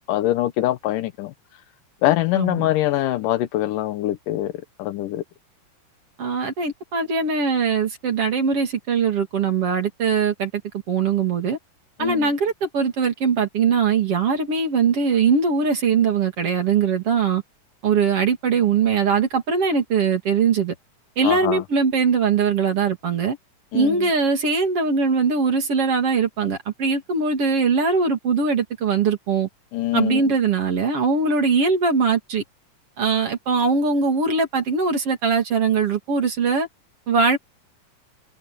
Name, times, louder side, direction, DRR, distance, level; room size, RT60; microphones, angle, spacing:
voice 1, 0.1-1.3 2.0-4.5 4.8-5.2 12.0-12.3 21.2-21.6 23.7-24.1 29.7-30.2, left 15 dB, 85° left, 2.5 m, -23 dB
voice 2, 2.3-2.7 6.2-10.5 10.9-11.6 12.0-17.4 17.8-20.7 21.2-23.4 23.7-29.5 29.9-32.4 33.0-36.7 37.1-37.4, right 5 dB, 45° right, 3.4 m, -21 dB
omnidirectional pair, 3.7 m